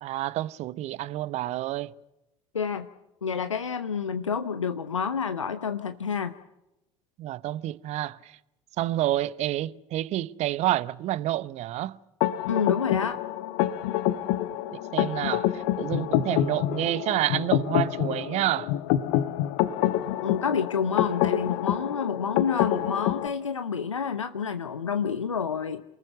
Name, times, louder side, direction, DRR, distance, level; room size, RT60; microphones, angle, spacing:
voice 1, 0.0-1.9 7.2-8.4 8.8-12.0 14.7-18.7, right 14 dB, 45° right, 0.9 m, -29 dB
voice 2, 2.5-2.9 3.2-6.3 12.5-13.2 20.2-25.8, left 6 dB, 85° left, 0.8 m, -29 dB
sound 1, 12.2-23.3, left 13 dB, 60° left, 1.2 m, -27 dB
28.0 x 20.0 x 6.9 m
figure-of-eight pair, 65°, 16 cm